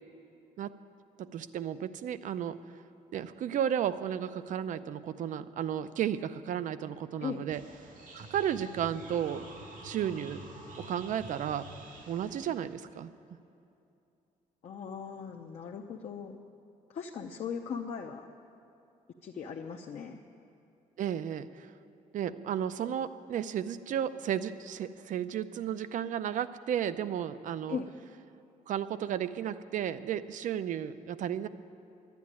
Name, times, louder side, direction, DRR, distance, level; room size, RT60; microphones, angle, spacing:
voice 1, 1.2-2.6 3.1-7.6 8.1-9.5 9.8-10.5 10.8-11.7 12.1-13.1 21.0-21.7 22.1-27.8 28.7-31.5, right 9 dB, 65° right, 13 dB, 0.5 m, -33 dB
sound 1, 7.5-12.5, right 1 dB, 90° right, 3.9 m, -48 dB
voice 2, 14.6-16.4 16.9-18.3 19.2-20.2 27.7-27.9, left 6 dB, 55° left, 1 dB, 0.6 m, -38 dB
11.0 x 10.5 x 9.7 m, 2.7 s
wide cardioid pair, 170°, 14 cm